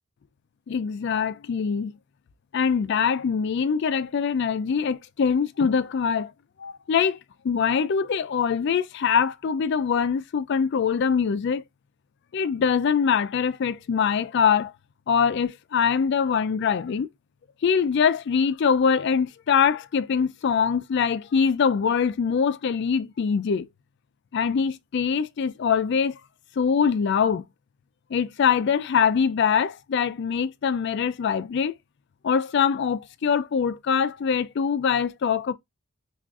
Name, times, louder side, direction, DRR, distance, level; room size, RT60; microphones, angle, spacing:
voice 1, 0.7-1.9 2.5-6.3 6.6-7.2 7.4-11.6 12.3-14.7 15.1-17.1 17.6-23.7 24.3-26.2 26.6-27.4 28.1-31.7 32.2-35.5, left 6 dB, 50° left, 0.3 m, -23 dB
5.9 x 2.4 x 2.4 m
head